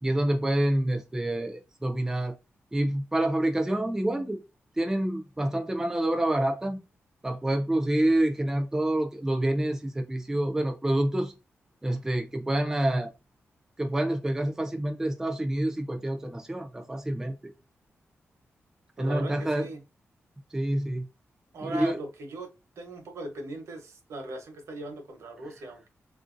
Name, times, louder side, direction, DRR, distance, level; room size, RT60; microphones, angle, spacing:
voice 1, 0.0-2.3 2.7-4.4 4.8-6.8 7.2-11.3 11.8-13.1 13.8-17.3 19.0-19.7 20.5-21.1 21.6-22.0, right 1 dB, 10° right, 0.5 m, -27 dB
voice 2, 19.0-19.8 21.5-22.5 22.8-25.9, right 1 dB, 80° right, 0.9 m, -38 dB
3.4 x 2.6 x 2.5 m
wide cardioid pair, 155°, 5 cm